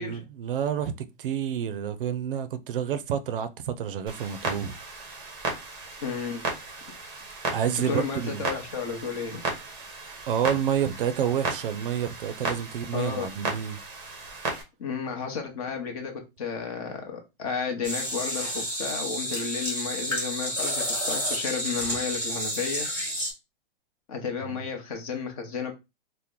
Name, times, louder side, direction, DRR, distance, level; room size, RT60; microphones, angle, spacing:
voice 1, 0.0-4.8 7.5-8.4 10.3-13.8 24.4-24.6, right 9 dB, 65° right, 0.5 m, -29 dB
Clock, 4.1-14.6, right 3 dB, 15° right, 0.7 m, -35 dB
voice 2, 6.0-6.4 7.9-9.4 12.9-13.3 14.8-22.9 24.1-25.7, left 5 dB, 40° left, 0.9 m, -32 dB
sound 1, 17.8-23.3, equal, 5° left, 0.9 m, -30 dB
2.9 x 2.1 x 3.6 m
hypercardioid pair, 160°, 29 cm